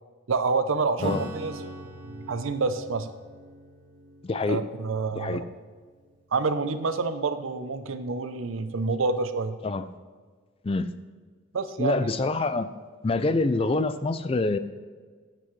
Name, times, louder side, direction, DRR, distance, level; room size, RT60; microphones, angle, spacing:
voice 1, 0.3-1.5 1.8-3.1 4.4-5.4 6.3-9.6 11.5-12.1, right 4 dB, 85° right, 10 dB, 0.6 m, -28 dB
Acoustic guitar / Strum, 1.0-6.9, equal, 65° right, 2.8 m, -42 dB
voice 2, 4.2-4.6 5.2-5.4 9.6-9.9 10.6-10.9 11.8-12.7 13.0-14.6, left 3 dB, 30° left, 12 dB, 0.3 m, -26 dB
10.0 x 7.8 x 3.2 m, 1.5 s
head